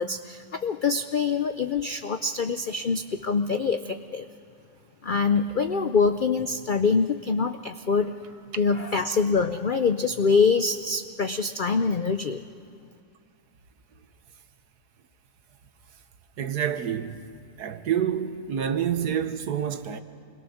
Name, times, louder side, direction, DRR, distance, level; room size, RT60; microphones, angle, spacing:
voice 1, 0.0-4.3 5.0-8.2 8.6-12.4, left 4 dB, 70° left, 0.4 m, -25 dB
voice 2, 16.4-17.2 17.6-20.0, right 9 dB, 85° right, 1.6 m, -28 dB
27.5 x 21.5 x 6.4 m
omnidirectional pair, 1.7 m